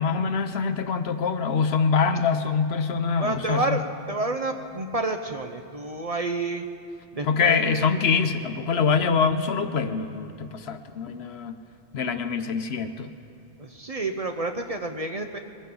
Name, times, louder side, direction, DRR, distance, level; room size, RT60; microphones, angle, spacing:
voice 1, 0.0-3.8 7.2-11.5 11.9-13.1, left 5 dB, 65° left, 9 dB, 1.0 m, -24 dB
voice 2, 3.2-6.6 7.1-7.9 13.6-15.4, right 2 dB, 40° right, 5 dB, 0.7 m, -29 dB
21.5 x 15.5 x 3.9 m, 2.8 s
omnidirectional pair, 1.2 m